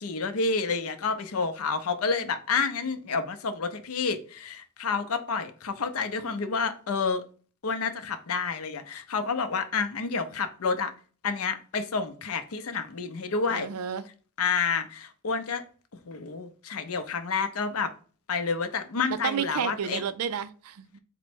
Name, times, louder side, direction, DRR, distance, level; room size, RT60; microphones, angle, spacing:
voice 1, 0.0-7.2 7.6-10.9 11.2-13.7 14.4-15.6 16.1-17.9 18.3-20.0, left 5 dB, 70° left, 0.6 m, -29 dB
voice 2, 13.5-14.0 19.1-21.0, right 7 dB, 75° right, 0.4 m, -31 dB
4.4 x 2.1 x 4.3 m
head